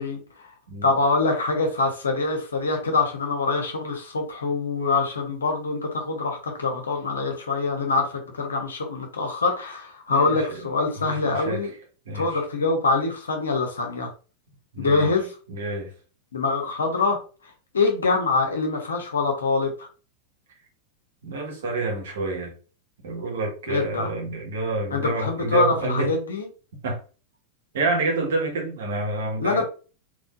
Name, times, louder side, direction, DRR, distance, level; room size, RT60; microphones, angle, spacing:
voice 1, 0.0-0.5 0.8-11.7 12.1-14.1 14.8-15.3 16.3-17.2 17.7-19.9 23.7-24.1 24.9-26.5 29.4-29.6, left 3 dB, 70° left, 3 dB, 1.0 m, -24 dB
voice 2, 10.1-10.6 11.0-11.6 12.0-12.3 14.7-15.1 15.5-15.9 21.2-22.5 23.0-26.1 26.8-27.0 27.7-29.6, right 3 dB, 60° right, 0 dB, 1.4 m, -28 dB
3.7 x 3.1 x 2.5 m, 0.35 s
figure-of-eight pair, 90°, 0 cm